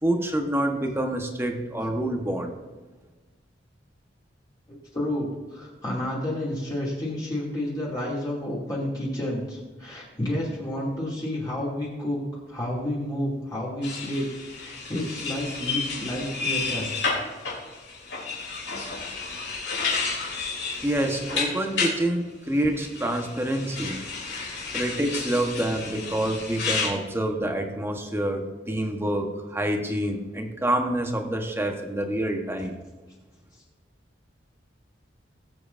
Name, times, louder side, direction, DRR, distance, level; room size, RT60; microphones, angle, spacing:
voice 1, 0.0-2.5 20.8-24.2 24.7-32.7, right 1 dB, 15° right, 3 dB, 1.1 m, -27 dB
voice 2, 4.7-16.9, left 1 dB, 20° left, -6 dB, 2.5 m, -30 dB
sound 1, 13.8-22.0 22.8-26.9, left 4 dB, 70° left, 3.2 m, -31 dB
19.0 x 7.8 x 2.6 m, 1.3 s
head